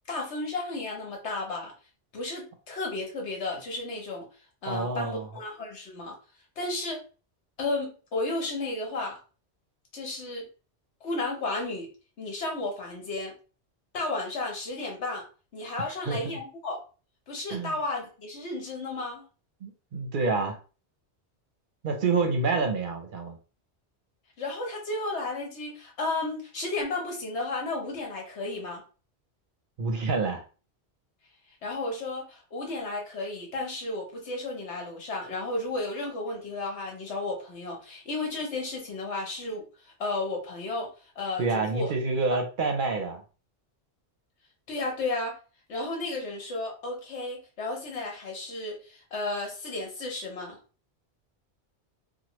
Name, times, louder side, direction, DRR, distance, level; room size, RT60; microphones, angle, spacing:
voice 1, 0.1-1.7 2.1-4.3 4.6-6.1 6.6-7.0 7.6-9.2 9.9-10.4 11.0-11.9 12.2-13.3 13.9-15.2 15.5-16.8 17.3-19.2 24.4-28.8 31.6-39.6 40.0-40.9 41.2-41.9 44.7-45.3 45.7-50.6, left 2 dB, 75° left, 1 dB, 1.3 m, -33 dB
voice 2, 4.7-5.3 15.9-16.4 17.5-17.7 19.6-20.6 21.8-23.4 29.8-30.4 41.4-43.2, right 3 dB, 55° right, 4 dB, 0.7 m, -28 dB
3.0 x 2.1 x 3.0 m, 0.36 s
omnidirectional pair, 1.2 m